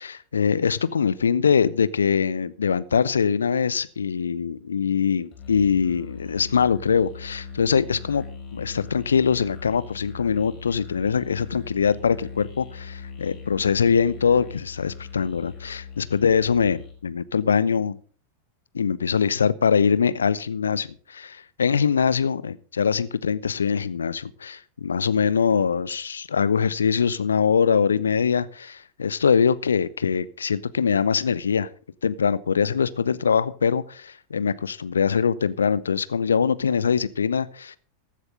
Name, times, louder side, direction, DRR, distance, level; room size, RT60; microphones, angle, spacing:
voice 1, 0.0-8.2 8.5-18.0 18.7-31.7 32.0-37.8, left 6 dB, 70° left, 18 dB, 0.7 m, -23 dB
Musical instrument, 5.3-17.0, left 5 dB, 35° left, 4.4 m, -40 dB
15.0 x 11.0 x 3.7 m, 0.43 s
figure-of-eight pair, 90°, 0 cm